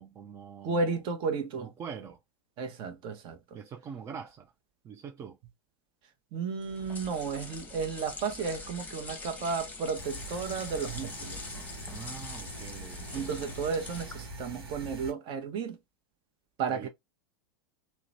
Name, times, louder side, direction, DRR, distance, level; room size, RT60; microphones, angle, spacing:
voice 1, 0.0-0.9 1.6-2.2 3.5-4.5 4.8-5.4 11.9-13.4 16.7-16.9, right 7 dB, 25° right, 0.4 m, -44 dB
voice 2, 0.6-1.7 2.6-3.4 6.3-11.4 13.1-15.8 16.6-16.9, right 5 dB, 40° right, 0.8 m, -33 dB
sound 1, 6.6-14.4, left 3 dB, 15° left, 0.8 m, -44 dB
sound 2, 10.0-15.1, right 1 dB, 80° right, 0.9 m, -44 dB
2.9 x 2.1 x 2.5 m
figure-of-eight pair, 90°, 13 cm